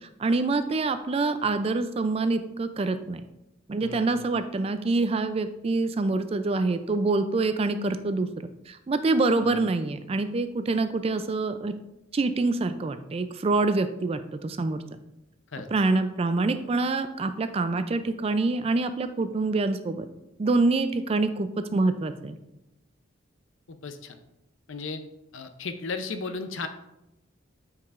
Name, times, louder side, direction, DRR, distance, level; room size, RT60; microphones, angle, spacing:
voice 1, 0.2-3.2 3.7-11.7 12.1-14.8 15.7-20.1 20.4-22.4, right 3 dB, 30° right, 10 dB, 0.3 m, -26 dB
voice 2, 3.8-4.3 9.4-9.6 15.5-15.7 23.7-24.2 24.7-25.0 25.3-26.7, left 4 dB, 80° left, 8 dB, 0.6 m, -35 dB
8.5 x 4.8 x 2.5 m, 0.90 s
head